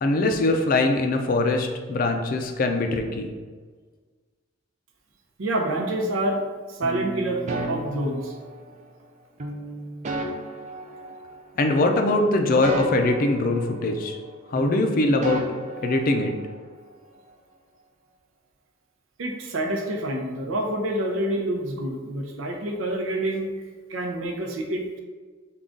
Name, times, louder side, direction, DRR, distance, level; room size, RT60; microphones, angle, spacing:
voice 1, 0.0-3.3 11.6-14.2 14.5-15.4 15.8-16.3, left 2 dB, 45° left, 5 dB, 0.4 m, -22 dB
voice 2, 5.4-6.4 6.7-8.3 19.2-23.5 23.9-25.0, right 1 dB, 85° right, 2 dB, 0.6 m, -27 dB
sound 1, 6.8-8.8 9.4-11.7 12.0-14.3 14.6-16.6, right 1 dB, 35° right, 0.4 m, -34 dB
3.7 x 2.3 x 3.6 m, 1.5 s
head